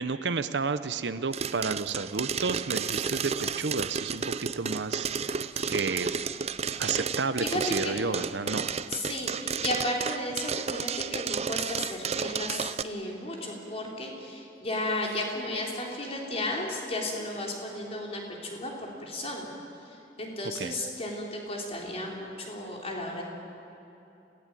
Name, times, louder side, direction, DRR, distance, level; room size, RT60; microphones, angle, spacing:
voice 1, 0.0-5.4 5.7-6.1 6.8-8.7 20.6-20.7, right 4 dB, 80° right, 12 dB, 0.8 m, -31 dB
sound 1, 1.3-12.8, right 6 dB, 40° right, 0.6 m, -32 dB
voice 2, 7.4-8.1 8.9-19.5 19.8-23.2, left 1 dB, 35° left, -1 dB, 4.1 m, -34 dB
27.0 x 16.5 x 9.3 m, 2.9 s
head